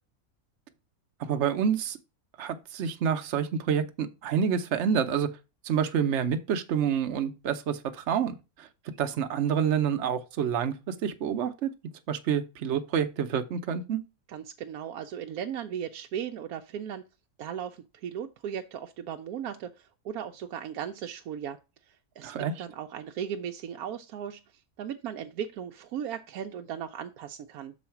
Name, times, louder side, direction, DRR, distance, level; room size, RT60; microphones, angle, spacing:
voice 1, 1.2-2.0 2.4-5.3 5.6-8.7 9.0-11.7 12.1-14.0 22.2-22.6, right 8 dB, 60° right, 1.0 m, -28 dB
voice 2, 14.3-17.0 17.4-21.6 22.2-22.3 22.6-24.4 24.8-27.7, right 9 dB, 80° right, 1.1 m, -37 dB
6.3 x 4.1 x 5.8 m
omnidirectional pair, 1.5 m